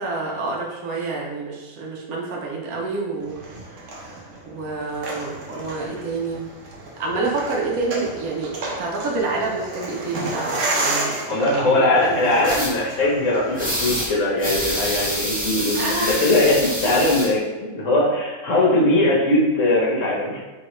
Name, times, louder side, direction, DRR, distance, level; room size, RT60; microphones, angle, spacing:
voice 1, 0.0-3.3 3.6-4.2 4.4-6.4 7.0-8.5 8.8-12.4 15.7-16.3, right 3 dB, 80° right, -2 dB, 1.2 m, -28 dB
sound 1, 3.2-14.1, right 2 dB, 65° right, 1.1 m, -31 dB
voice 2, 11.3-20.4, left 2 dB, 60° left, -4 dB, 1.3 m, -20 dB
sound 2, 12.4-12.7 13.6-14.1 14.4-17.3, equal, 10° right, 0.4 m, -26 dB
3.5 x 3.1 x 3.0 m, 1.2 s
omnidirectional pair, 1.5 m